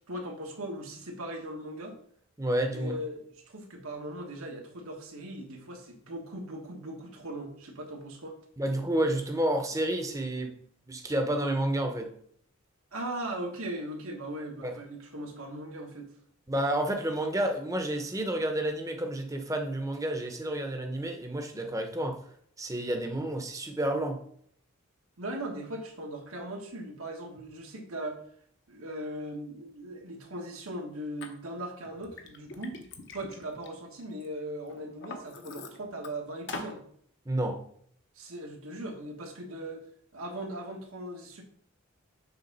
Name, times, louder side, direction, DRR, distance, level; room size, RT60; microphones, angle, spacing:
voice 1, 0.1-1.9 2.7-8.4 12.9-16.1 25.2-28.1 28.7-36.8 38.1-39.8 40.1-41.4, right 1 dB, 85° right, 2 dB, 1.4 m, -39 dB
voice 2, 2.4-3.0 8.6-10.5 10.9-12.1 14.6-14.8 16.5-22.2 22.6-24.2 37.3-37.6, right 1 dB, 15° right, 4 dB, 0.7 m, -30 dB
Liquid, 31.2-31.3 31.8-34.3 34.7-36.1 36.5-36.8, left 3 dB, 55° left, 0.9 m, -42 dB
6.6 x 3.6 x 5.4 m, 0.64 s
head